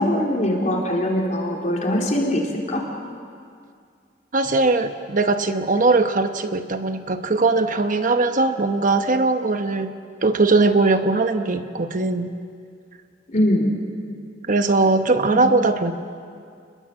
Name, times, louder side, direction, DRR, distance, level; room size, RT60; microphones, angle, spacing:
voice 1, 0.0-2.8 13.3-13.8 15.3-15.5, left 1 dB, 40° left, -1 dB, 4.1 m, -22 dB
voice 2, 4.3-9.9 10.2-12.3 14.5-15.9, right 3 dB, 45° right, 8 dB, 1.0 m, -20 dB
29.5 x 21.0 x 7.6 m, 2.3 s
head